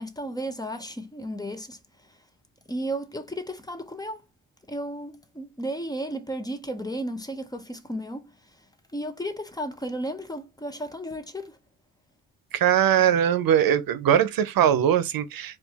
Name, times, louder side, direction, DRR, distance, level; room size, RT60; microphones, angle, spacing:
voice 1, 0.0-1.8 2.7-4.2 4.7-8.3 8.9-11.6, right 1 dB, 10° left, 0.7 m, -33 dB
voice 2, 12.5-15.6, right 9 dB, 85° right, 0.7 m, -21 dB
4.5 x 2.5 x 4.1 m
wide cardioid pair, 130°, 34 cm